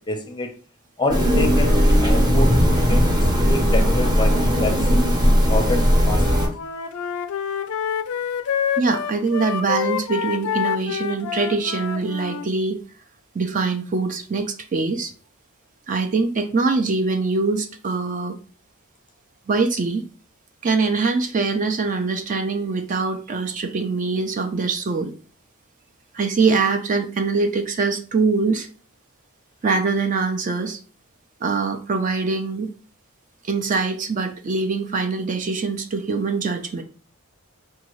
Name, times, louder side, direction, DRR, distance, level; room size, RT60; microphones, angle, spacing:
voice 1, 0.1-0.5 1.0-1.7 2.0-3.1 3.4-5.0 5.5-6.2, left 2 dB, 20° left, 5 dB, 0.5 m, -27 dB
sound 1, 1.1-6.5, equal, 20° right, 0.7 m, -17 dB
Wind instrument woodwind instrument, 6.1-12.5, left 8 dB, 75° left, 0.3 m, -27 dB
voice 2, 8.8-12.8 13.3-15.1 15.9-18.4 19.5-20.0 20.6-25.1 26.1-28.7 29.6-30.8 31.4-32.7 33.4-36.8, right 4 dB, 35° right, 7 dB, 0.4 m, -23 dB
4.6 x 2.6 x 3.0 m, 0.39 s
head